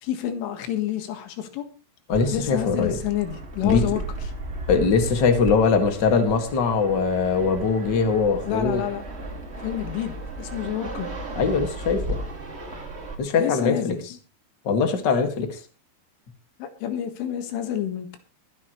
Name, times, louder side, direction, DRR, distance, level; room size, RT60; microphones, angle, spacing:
voice 1, 0.0-1.7 2.3-4.0 8.5-9.1 9.6-11.1 13.4-14.0 16.6-18.2, left 11 dB, 85° left, 8 dB, 4.1 m, -29 dB
voice 2, 2.1-3.0 3.6-3.8 4.7-8.8 11.3-12.2 13.2-13.9 14.6-15.6, left 5 dB, 50° left, 6 dB, 1.2 m, -21 dB
Fixed-wing aircraft airplane, 2.1-13.1, right 1 dB, 85° right, 0.5 m, -35 dB
22.5 x 9.7 x 3.1 m, 0.34 s
omnidirectional pair, 5.4 m